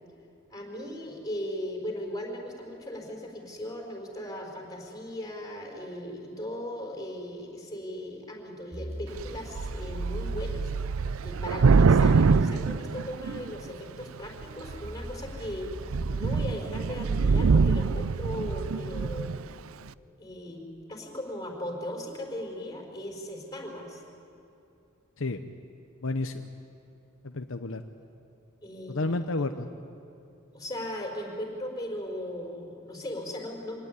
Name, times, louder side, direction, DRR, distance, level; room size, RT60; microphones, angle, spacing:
voice 1, 0.5-10.7 11.2-15.7 16.1-19.5 20.2-20.6 20.9-24.0 28.6-29.2 30.5-33.9, left 1 dB, 20° left, 0 dB, 4.7 m, -38 dB
sound 1, 8.7-11.7 14.7-18.1, equal, 35° right, 4.9 m, -41 dB
Thunder / Rain, 9.2-9.3 9.6-13.7 14.4-14.9 15.3-15.4 15.7-19.4, right 4 dB, 75° right, 0.5 m, -24 dB
voice 2, 26.0-26.4 27.2-27.8 28.9-29.7, left 2 dB, 65° left, 7 dB, 0.9 m, -31 dB
25.0 x 18.5 x 9.8 m, 2.7 s
head